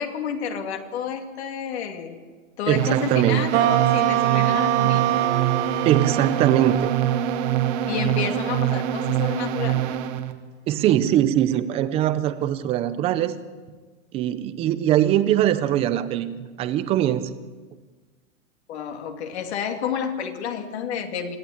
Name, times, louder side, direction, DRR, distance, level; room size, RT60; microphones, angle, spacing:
voice 1, 0.0-2.2 2.6-5.2 7.9-9.9 18.7-21.4, left 7 dB, 50° left, 5 dB, 2.6 m, -30 dB
voice 2, 2.7-3.4 5.8-6.9 10.7-13.4 14.1-16.3 16.6-17.3, right 12 dB, 15° right, 12 dB, 0.6 m, -21 dB
sound 1, 2.8-10.3, right 14 dB, 30° right, 1.5 m, -25 dB
sound 2, 3.5-10.2, right 10 dB, 60° right, 2.4 m, -25 dB
25.5 x 14.5 x 8.7 m, 1.4 s
hypercardioid pair, 155°, 41 cm